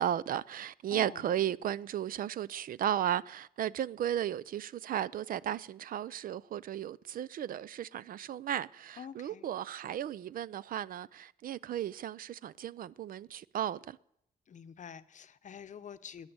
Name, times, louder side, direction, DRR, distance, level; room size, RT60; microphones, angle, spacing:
voice 1, 0.0-14.0, right 11 dB, 70° right, 0.4 m, -35 dB
voice 2, 0.9-1.3 9.0-9.5 14.5-16.3, left 8 dB, 55° left, 0.8 m, -47 dB
14.0 x 9.8 x 7.9 m
cardioid pair, 95°, 15 cm